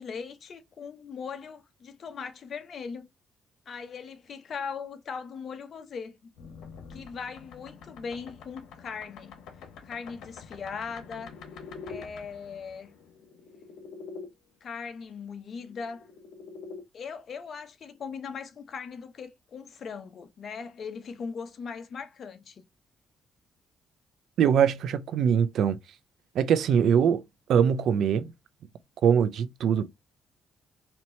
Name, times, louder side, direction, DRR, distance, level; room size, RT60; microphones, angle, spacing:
voice 1, 0.0-3.1 3.7-6.3 6.9-9.4 9.8-11.3 11.8-12.9 14.6-16.1 16.9-22.6, left 5 dB, 55° left, 0.9 m, -39 dB
sound 1, 6.4-14.3 15.6-16.8, left 5 dB, 85° left, 1.1 m, -46 dB
voice 2, 24.4-25.8 26.3-27.2 27.5-28.3 29.0-29.9, right 8 dB, 70° right, 0.5 m, -22 dB
4.4 x 2.9 x 2.7 m
cardioid pair, 90°, 0 cm